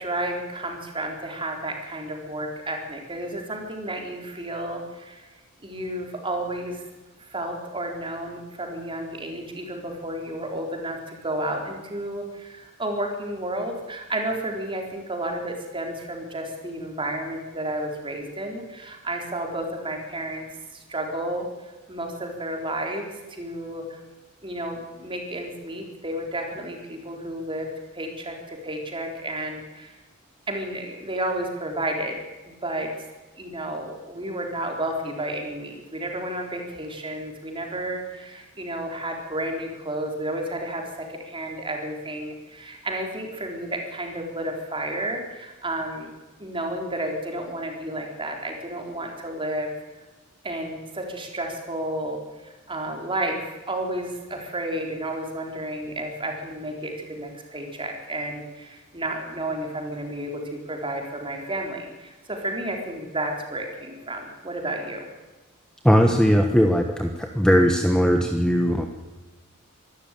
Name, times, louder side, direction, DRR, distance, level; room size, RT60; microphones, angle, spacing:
voice 1, 0.0-5.3 5.6-6.8 7.2-20.4 20.7-21.5 21.9-24.0 24.4-30.0 30.5-32.2 32.5-32.9 33.4-46.1 46.4-49.7 50.4-65.1, right 1 dB, 25° right, 2 dB, 4.0 m, -31 dB
voice 2, 65.8-68.9, equal, 5° left, 4 dB, 1.2 m, -19 dB
24.5 x 13.0 x 9.2 m, 1.2 s
head